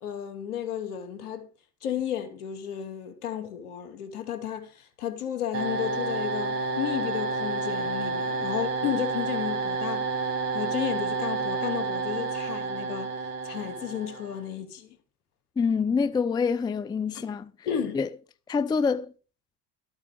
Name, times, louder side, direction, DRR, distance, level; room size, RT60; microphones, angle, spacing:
voice 1, 0.0-1.5 1.8-10.1 10.5-13.1 13.4-14.9 17.1-17.3 17.7-18.0, left 10 dB, 70° left, 2.4 m, -33 dB
sound 1, 5.5-14.5, right 3 dB, 75° right, 2.4 m, -30 dB
voice 2, 15.6-17.5 17.9-18.1 18.5-19.1, left 5 dB, 10° left, 0.5 m, -26 dB
13.0 x 8.8 x 4.7 m
figure-of-eight pair, 70°, 46 cm